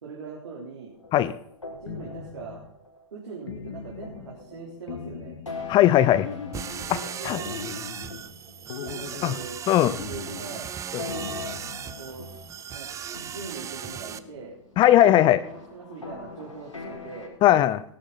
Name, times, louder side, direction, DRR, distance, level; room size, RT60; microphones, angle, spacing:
voice 1, 0.0-0.9 1.7-2.6 3.1-5.3 6.9-7.5 8.8-9.6 10.0-10.7 11.0-12.3 12.7-14.6 15.0-15.4 15.7-17.3, right 4 dB, 65° right, -4 dB, 3.9 m, -41 dB
sound 1, 0.9-3.4 4.0-9.4 10.3-17.3, left 4 dB, 85° left, 4.2 m, -43 dB
sound 2, 1.9-2.7 3.5-4.4 4.9-5.8 6.2-7.0 7.5-8.3 8.7-9.5 9.9-10.7 11.1-12.0, left 7 dB, 60° left, 1.7 m, -39 dB
voice 2, 5.7-6.3 6.9-7.0 7.2-7.4 9.2-9.3 9.7-9.9 10.9-11.0 14.8-15.4 17.4-17.8, left 12 dB, 30° left, 16 dB, 0.7 m, -18 dB
sound 3, 6.5-14.2, right 8 dB, 20° right, 0.7 m, -37 dB
18.0 x 11.0 x 4.2 m, 0.67 s
figure-of-eight pair, 95°, 16 cm